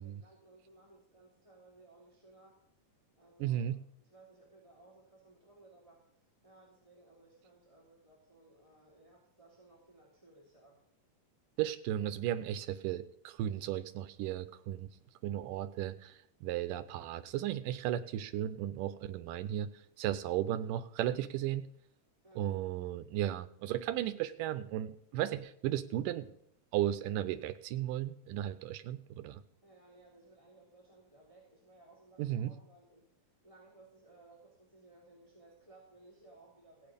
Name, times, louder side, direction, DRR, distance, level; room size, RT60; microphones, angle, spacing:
voice 1, 0.0-2.6 3.2-10.8 22.2-22.6 29.6-36.9, right 2 dB, 10° right, -5 dB, 3.0 m, -61 dB
voice 2, 3.4-3.8 11.6-14.9 15.2-19.7 20.0-21.7 22.4-26.3 26.7-29.4 32.2-32.5, right 12 dB, 80° right, 12 dB, 2.3 m, -35 dB
16.0 x 9.4 x 5.2 m, 0.69 s
omnidirectional pair, 3.9 m